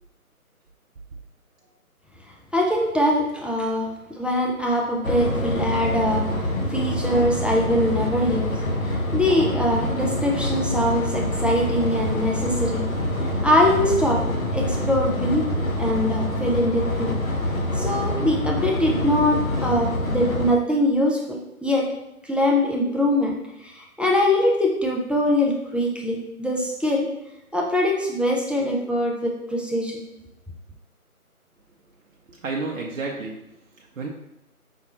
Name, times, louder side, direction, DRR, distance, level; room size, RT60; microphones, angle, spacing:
voice 1, 2.5-12.9 13.4-17.2 17.8-21.9 22.2-27.1 27.5-30.0, left 1 dB, 5° right, -2 dB, 0.3 m, -23 dB
sound 1, 5.0-20.5, left 1 dB, 65° left, 0.8 m, -26 dB
voice 2, 32.3-34.1, right 3 dB, 65° right, -1 dB, 0.6 m, -32 dB
5.2 x 2.1 x 2.9 m, 0.87 s
figure-of-eight pair, 175°, 45 cm